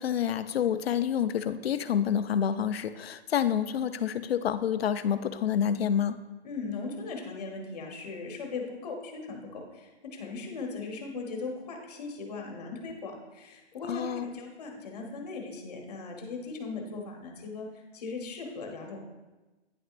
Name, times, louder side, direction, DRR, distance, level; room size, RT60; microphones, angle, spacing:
voice 1, 0.0-6.2 13.9-14.4, left 8 dB, 65° left, 12 dB, 0.4 m, -28 dB
voice 2, 6.4-19.0, left 4 dB, 35° left, 2 dB, 1.1 m, -38 dB
9.6 x 6.1 x 2.5 m, 1.2 s
hypercardioid pair, 170°, 34 cm